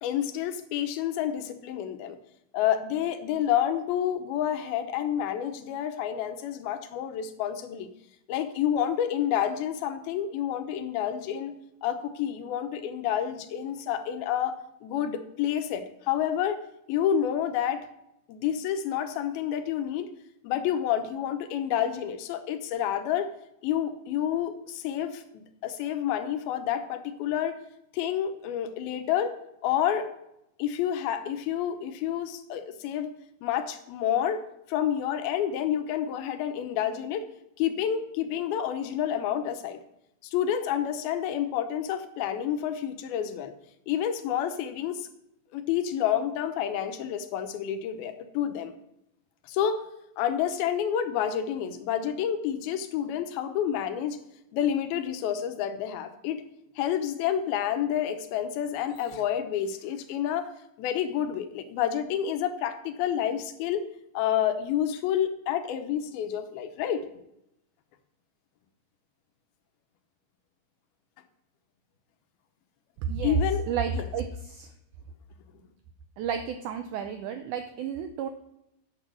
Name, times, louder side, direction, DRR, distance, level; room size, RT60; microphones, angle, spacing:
voice 1, 0.0-2.2 2.5-7.9 8.3-11.5 11.8-14.6 14.8-16.6 16.9-17.9 18.3-20.1 20.4-23.3 23.6-27.6 27.9-29.3 29.6-30.1 30.6-33.1 33.4-34.4 34.7-37.3 37.6-39.8 40.2-43.5 43.9-45.1 45.5-48.7 49.4-49.8 50.2-54.2 54.5-56.4 56.8-60.5 60.8-63.8 64.1-67.1 73.2-74.1, left 10 dB, 85° left, 9 dB, 2.7 m, -29 dB
voice 2, 73.0-73.4 73.7-74.7 76.2-78.3, right 7 dB, 85° right, 8 dB, 1.7 m, -31 dB
10.0 x 7.2 x 6.1 m, 0.82 s
omnidirectional pair, 4.2 m